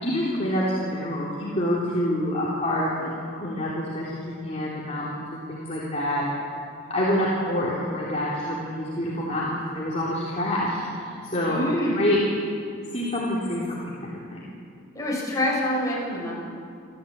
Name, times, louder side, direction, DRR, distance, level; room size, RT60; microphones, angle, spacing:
voice 1, 0.0-4.1 4.4-6.2 6.9-11.6 11.9-12.2 12.9-14.4, left 1 dB, 30° left, -7 dB, 3.5 m, -27 dB
voice 2, 11.4-12.1 14.9-16.3, left 1 dB, 15° left, -5 dB, 7.2 m, -26 dB
27.5 x 15.0 x 8.8 m, 2.4 s
head